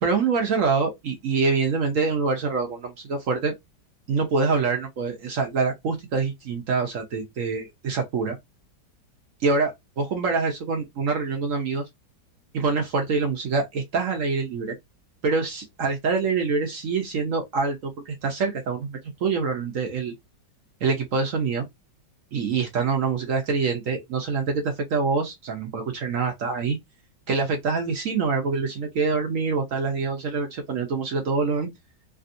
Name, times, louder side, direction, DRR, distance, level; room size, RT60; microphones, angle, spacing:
voice 1, 0.0-3.5 4.1-8.4 9.4-11.8 12.5-14.8 15.2-20.1 20.8-21.7 22.3-26.8 27.3-31.7, right 4 dB, 60° right, 0.9 m, -25 dB
3.3 x 2.4 x 2.6 m
omnidirectional pair, 1.9 m